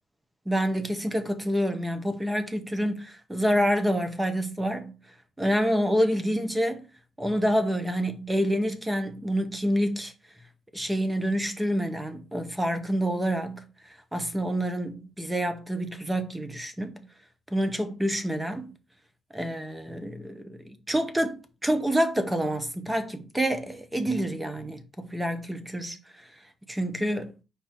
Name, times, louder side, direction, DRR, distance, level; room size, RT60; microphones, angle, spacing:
voice 1, 0.5-5.0 5.4-6.9 7.2-10.1 10.7-13.7 14.1-17.1 17.5-18.7 19.3-26.3 26.7-27.3, equal, 10° right, 0.7 m, -27 dB
4.7 x 2.6 x 4.3 m
cardioid pair, 90°, 0 cm